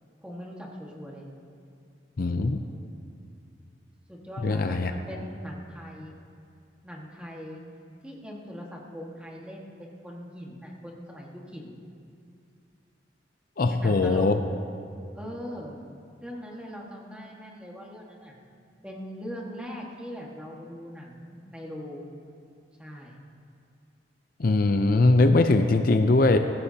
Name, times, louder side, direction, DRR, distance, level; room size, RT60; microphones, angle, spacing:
voice 1, 0.2-1.3 4.1-6.1 6.8-7.6 8.0-11.8 13.7-14.3 15.1-15.8 16.2-18.3 18.8-22.1 22.8-23.1, equal, 5° right, -3 dB, 1.7 m, -40 dB
voice 2, 2.2-2.6 4.4-4.9 13.6-14.4 24.4-26.4, left 2 dB, 55° left, 7 dB, 0.6 m, -21 dB
21.0 x 15.5 x 2.9 m, 2.5 s
head